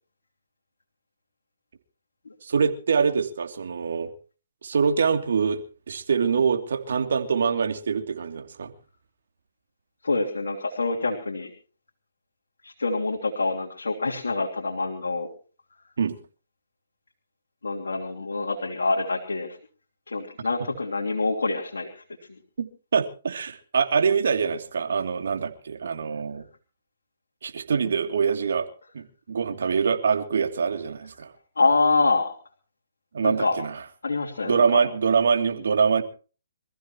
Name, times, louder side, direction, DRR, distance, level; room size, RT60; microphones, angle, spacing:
voice 1, 2.4-4.1 4.6-8.7 16.0-16.2 22.6-26.5 27.4-28.7 28.9-31.3 33.1-33.8 34.4-36.0, right 6 dB, 70° right, 6 dB, 2.8 m, -24 dB
voice 2, 10.0-11.5 12.6-15.3 17.6-19.6 20.1-22.0 22.3-22.4 31.6-32.3 33.2-33.6 34.0-34.8, left 3 dB, 85° left, 0 dB, 3.1 m, -26 dB
26.5 x 15.0 x 3.0 m, 0.37 s
hypercardioid pair, 145°, 0 cm